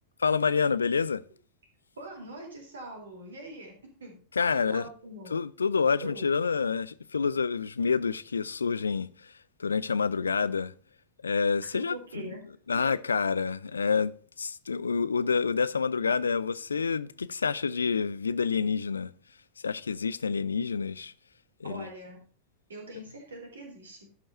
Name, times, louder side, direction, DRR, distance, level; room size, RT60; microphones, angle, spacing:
voice 1, 0.2-1.2 4.4-4.8 5.3-9.3 9.6-10.7 11.2-12.0 12.7-14.1 14.4-19.1 19.6-21.1 21.6-21.9, left 5 dB, 75° left, 0.4 m, -28 dB
voice 2, 2.0-4.2 4.5-5.4 6.0-6.2 11.7-12.4 12.8-12.9 21.6-22.2 22.7-24.0, right 2 dB, 70° right, 3.4 m, -43 dB
12.0 x 5.4 x 5.4 m
figure-of-eight pair, 90°, 0 cm